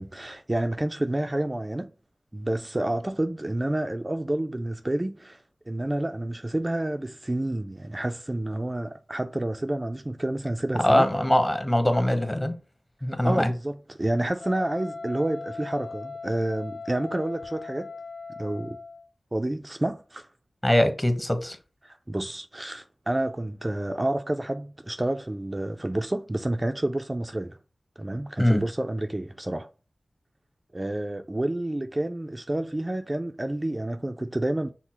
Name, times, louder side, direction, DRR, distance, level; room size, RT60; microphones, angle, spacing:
voice 1, 0.0-1.9 2.3-11.1 13.3-17.9 18.4-18.8 19.3-20.3 21.8-27.6 28.0-29.7 30.7-34.7, right 1 dB, 30° right, 0.4 m, -29 dB
voice 2, 10.8-12.5 13.0-13.5 20.6-21.6 28.4-28.6, left 1 dB, 20° left, 1.0 m, -22 dB
Wind instrument woodwind instrument, 14.4-19.1, left 4 dB, 75° left, 0.9 m, -39 dB
5.9 x 2.0 x 4.3 m
cardioid pair, 45°, 0 cm